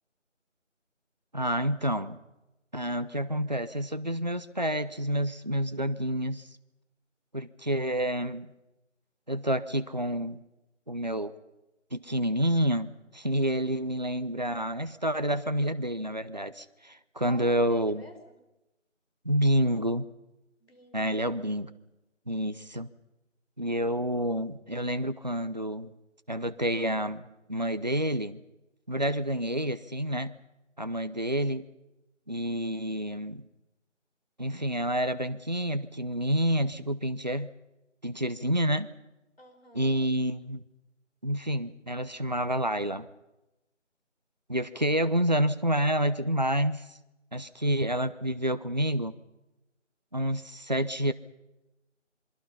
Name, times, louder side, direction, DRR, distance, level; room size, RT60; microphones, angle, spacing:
voice 1, 1.3-2.2 2.7-6.5 7.3-8.5 9.3-10.4 10.9-11.3 11.9-18.1 19.2-20.1 20.9-21.7 22.3-22.9 23.6-25.9 26.3-28.4 28.9-30.4 30.8-31.7 32.3-33.4 34.4-37.5 38.0-38.9 39.7-40.6 41.2-43.1 44.5-46.9 47.3-49.1 50.1-51.1, right 1 dB, 35° right, 12 dB, 0.8 m, -28 dB
voice 2, 17.2-18.4 20.6-21.2 39.4-40.1, left 1 dB, 50° left, 6 dB, 4.9 m, -49 dB
27.0 x 23.5 x 5.6 m, 0.97 s
figure-of-eight pair, 175°, 37 cm